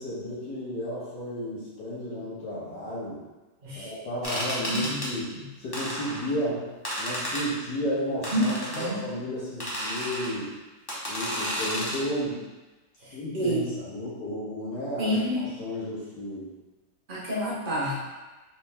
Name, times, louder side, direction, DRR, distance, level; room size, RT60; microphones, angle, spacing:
voice 1, 0.0-3.2 3.8-5.3 5.6-6.7 7.0-10.6 11.1-12.4 13.1-15.2 15.6-16.5, equal, 75° left, -8 dB, 2.0 m, -33 dB
sound 1, 4.2-5.1 5.7-6.3 6.8-7.5 8.2-8.9 9.6-10.3 10.9-12.0, equal, 20° left, 0.6 m, -32 dB
voice 2, 4.7-5.0 8.3-9.0 13.0-13.7 15.0-15.5 17.1-18.0, equal, 35° right, -6 dB, 0.9 m, -28 dB
4.4 x 3.0 x 3.4 m, 1.2 s
omnidirectional pair, 1.9 m